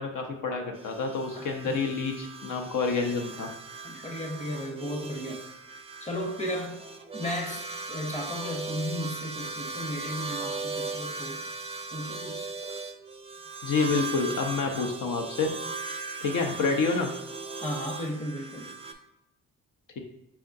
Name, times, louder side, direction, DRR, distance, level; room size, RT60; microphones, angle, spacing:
voice 1, 0.0-3.5 3.9-4.0 13.6-15.5 16.2-17.1, left 4 dB, 70° left, 3 dB, 0.6 m, -28 dB
sound 1, 0.7-18.9, right 4 dB, 20° right, 0.4 m, -38 dB
voice 2, 1.3-1.7 3.8-5.4 6.0-6.8 7.1-11.4 11.9-12.5 17.6-18.7, left 1 dB, 20° left, 2 dB, 0.8 m, -35 dB
4.6 x 3.5 x 2.6 m, 0.95 s
cardioid pair, 75°, 34 cm